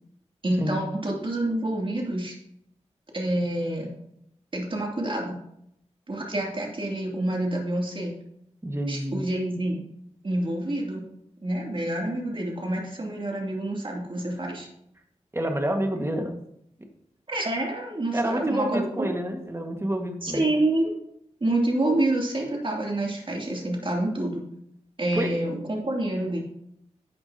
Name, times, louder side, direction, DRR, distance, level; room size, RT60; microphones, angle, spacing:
voice 1, 0.4-2.3 3.1-3.9 4.5-5.4 6.1-8.2 8.9-9.8 10.2-11.0 11.4-14.7 17.3-19.1 20.2-20.9 21.4-24.4 25.0-26.4, right 1 dB, 45° right, -1 dB, 2.9 m, -27 dB
voice 2, 8.6-9.2 15.3-16.3 18.1-20.5 25.1-25.4, right 1 dB, 20° right, 3 dB, 1.8 m, -28 dB
12.5 x 8.6 x 2.9 m, 0.74 s
wide cardioid pair, 65°, 12 cm